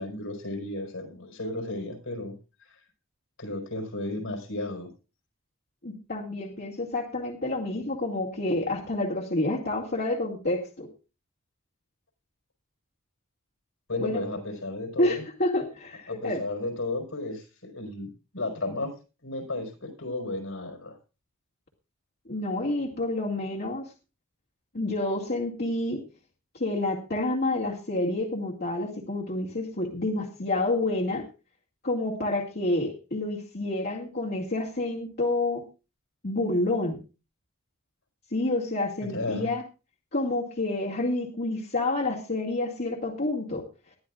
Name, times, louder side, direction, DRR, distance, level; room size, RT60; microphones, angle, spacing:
voice 1, 0.0-2.3 3.4-4.9 13.9-15.2 16.1-18.9 19.2-21.0 39.0-39.5, left 2 dB, 75° left, 2 dB, 4.7 m, -33 dB
voice 2, 5.8-10.9 14.0-14.2 15.0-16.4 22.3-23.8 24.7-26.0 26.5-31.2 31.8-35.6 36.2-37.0 38.3-39.6 40.1-43.6, left 2 dB, 45° left, -4 dB, 2.2 m, -28 dB
20.5 x 12.5 x 2.5 m, 0.31 s
head